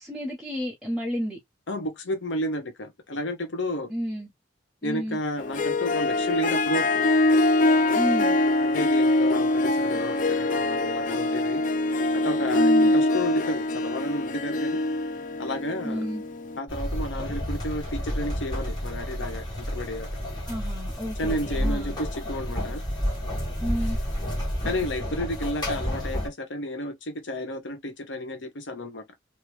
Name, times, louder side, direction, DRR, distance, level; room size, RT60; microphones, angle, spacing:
voice 1, 0.0-1.4 3.9-4.3 4.8-5.2 7.9-8.4 12.5-12.9 15.8-16.2 20.5-22.0 23.6-24.0, equal, ahead, 1.0 m, -31 dB
voice 2, 1.7-3.9 4.8-7.0 8.6-11.6 12.1-14.8 15.4-16.0 16.6-20.1 21.2-22.8 24.6-29.0, left 1 dB, 75° left, 1.0 m, -32 dB
Harp, 5.4-16.6, left 2 dB, 45° left, 0.5 m, -23 dB
sound 1, 16.7-26.3, equal, 25° left, 1.6 m, -30 dB
3.1 x 2.8 x 3.1 m
head